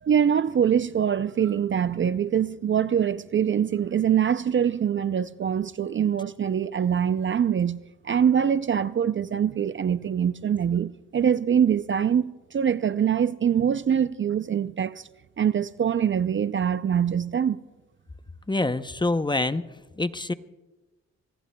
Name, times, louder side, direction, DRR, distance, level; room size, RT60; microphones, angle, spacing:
voice 1, 0.0-7.8 8.0-15.1 15.4-17.6, right 8 dB, 40° right, 0.4 m, -24 dB
voice 2, 18.5-19.6 20.0-20.3, left 2 dB, 15° left, 0.6 m, -25 dB
25.0 x 19.5 x 2.2 m
cardioid pair, 75°, 29 cm